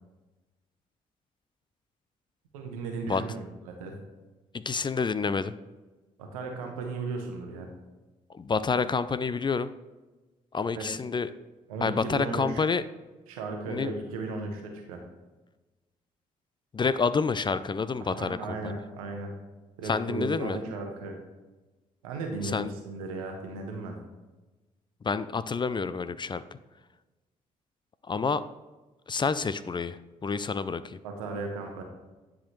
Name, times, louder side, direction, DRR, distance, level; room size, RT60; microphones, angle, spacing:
voice 1, 2.5-4.0 6.2-7.7 10.7-10.8 11.7-12.7 13.3-15.0 18.0-19.3 19.8-21.2 22.0-23.9 31.0-31.8, right 3 dB, 85° right, 3 dB, 1.1 m, -36 dB
voice 2, 4.5-5.5 8.3-9.7 10.5-11.3 11.8-12.8 13.7-13.9 16.7-18.8 19.8-20.6 22.4-22.7 25.0-26.4 28.1-28.4 29.1-31.0, left 5 dB, 25° left, 14 dB, 0.4 m, -28 dB
10.0 x 4.9 x 3.1 m, 1.2 s
hypercardioid pair, 45°, 18 cm